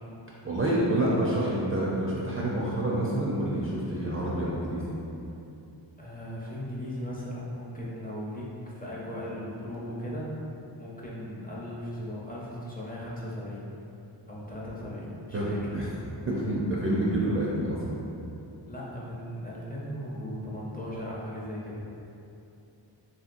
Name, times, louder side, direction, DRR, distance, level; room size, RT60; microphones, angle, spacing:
voice 1, 0.4-5.0 15.3-15.9 16.3-18.0, right 1 dB, 30° right, -6 dB, 0.4 m, -28 dB
voice 2, 6.0-8.5 8.8-10.3 10.8-13.7 14.3-15.8 17.1-17.2 18.7-21.8, equal, 20° left, -6 dB, 0.5 m, -37 dB
3.0 x 2.8 x 2.5 m, 2.8 s
wide cardioid pair, 80°, 45 cm